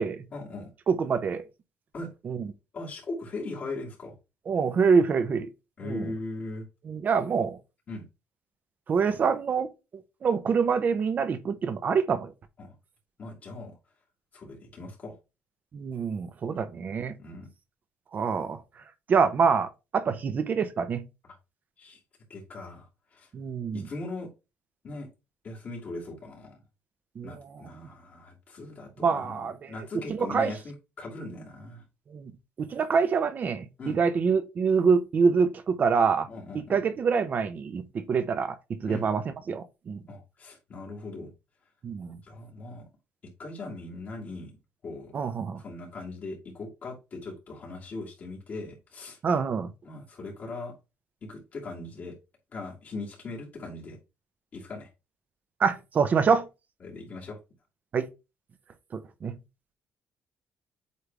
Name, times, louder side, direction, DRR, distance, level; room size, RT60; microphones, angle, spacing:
voice 1, 0.3-0.7 1.9-2.1 2.7-4.1 5.8-6.6 7.9-8.0 9.0-9.2 12.6-12.7 13.2-13.8 14.3-15.2 16.5-16.6 17.2-17.5 20.1-20.2 21.8-22.0 22.3-22.9 23.1-23.3 23.7-24.3 24.8-25.1 25.4-26.6 27.2-31.8 33.8-34.0 36.3-36.8 38.9-39.1 40.1-41.3 42.2-42.8 43.4-44.5 44.8-45.1 45.6-49.2 49.8-50.7 51.2-52.1 52.5-54.0 54.5-54.9 56.8-57.4, left 2 dB, 40° left, 2.6 m, -39 dB
voice 2, 0.9-1.4 2.2-2.5 4.5-5.5 5.8-6.1 6.9-7.6 8.9-9.7 10.2-12.3 15.7-17.2 18.1-18.6 19.1-21.0 23.3-23.9 27.2-27.4 29.0-29.7 30.1-30.5 32.1-32.3 32.6-36.3 36.5-40.0 41.8-42.2 45.1-45.6 49.2-49.7 55.6-56.5 57.9-58.1 58.9-59.4, right 5 dB, 40° right, 0.8 m, -26 dB
8.3 x 3.3 x 3.4 m
cardioid pair, 140°, 4 cm